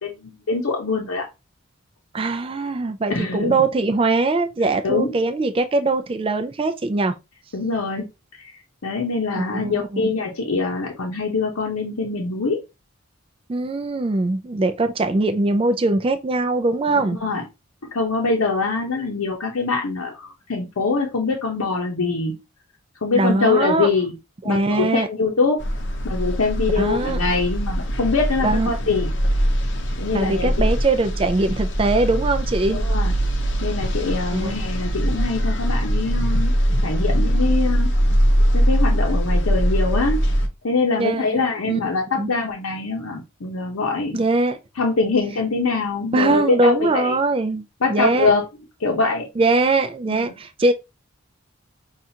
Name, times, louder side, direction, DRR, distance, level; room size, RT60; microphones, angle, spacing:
voice 1, 0.0-1.3 3.1-3.5 4.8-5.1 7.5-8.1 8.4-8.5 8.8-12.6 16.9-17.4 17.9-22.3 23.0-24.1 24.4-25.6 26.0-29.1 30.0-30.7 32.7-33.1 33.6-36.5 36.8-37.9 38.5-40.2 40.6-44.2 44.8-47.2 47.8-48.4 48.8-49.3 50.1-50.3, left 4 dB, 90° left, 0.8 m, -23 dB
voice 2, 2.1-7.1 9.4-10.1 13.5-17.2 23.2-23.9 24.4-25.1 26.8-27.2 28.4-28.8 30.1-32.8 34.3-34.5 40.9-41.4 41.7-41.8 42.2-42.3 44.1-44.6 46.1-48.3 49.4-50.7, right 2 dB, 25° right, 0.3 m, -21 dB
sound 1, 25.6-40.5, equal, 55° left, 0.7 m, -21 dB
5.5 x 2.4 x 2.7 m
head